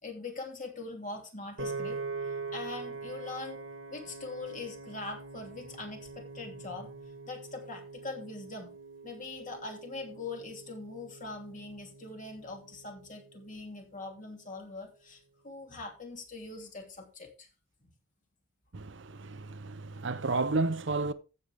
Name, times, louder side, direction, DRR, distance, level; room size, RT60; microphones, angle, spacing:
voice 1, 0.0-3.6 3.9-8.7 9.0-17.5 17.8-17.9, left 3 dB, 40° left, 3.0 m, -42 dB
Piano, 1.6-13.8, right 4 dB, 80° right, 1.7 m, -43 dB
voice 2, 18.7-21.1, right 3 dB, 65° right, 0.8 m, -32 dB
15.0 x 6.7 x 3.6 m
head